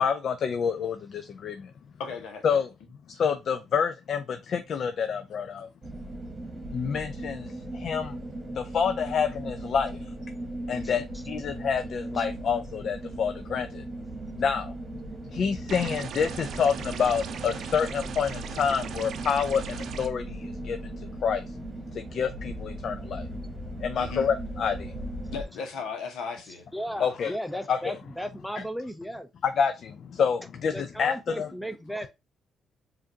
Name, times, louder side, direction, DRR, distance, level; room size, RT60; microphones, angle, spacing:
voice 1, 0.0-1.7 2.4-2.7 3.1-5.7 6.7-8.2 8.5-10.0 10.7-13.8 14.4-14.7 15.3-21.4 21.9-23.3 23.8-24.9 27.0-27.3 27.7-27.9 29.4-31.5, left 6 dB, 60° left, 0.4 m, -28 dB
voice 2, 2.0-2.6 10.7-11.0 24.0-24.3 25.3-26.6 27.0-27.1, left 5 dB, 80° left, 1.0 m, -37 dB
sound 1, 5.8-25.4, right 1 dB, 20° right, 1.2 m, -38 dB
sound 2, 15.7-20.1, right 7 dB, 65° right, 0.5 m, -38 dB
voice 3, 26.7-29.3 30.7-32.1, equal, ahead, 0.5 m, -35 dB
4.9 x 2.6 x 2.7 m
cardioid pair, 90°, 0 cm